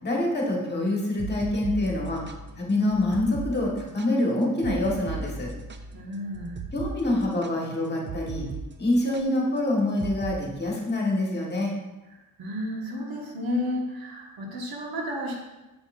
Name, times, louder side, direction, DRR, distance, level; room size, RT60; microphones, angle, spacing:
voice 1, 0.0-2.2 2.6-5.5 6.7-8.5 8.8-11.7, left 1 dB, 30° left, -3 dB, 1.7 m, -26 dB
sound 1, 1.0-8.7 8.9-9.2 10.0-10.4, right 4 dB, 30° right, 0.5 m, -37 dB
voice 2, 5.9-6.6 12.4-15.4, left 1 dB, 75° right, -3 dB, 1.8 m, -32 dB
7.7 x 5.7 x 2.6 m, 1.0 s
cardioid pair, 95°, 36 cm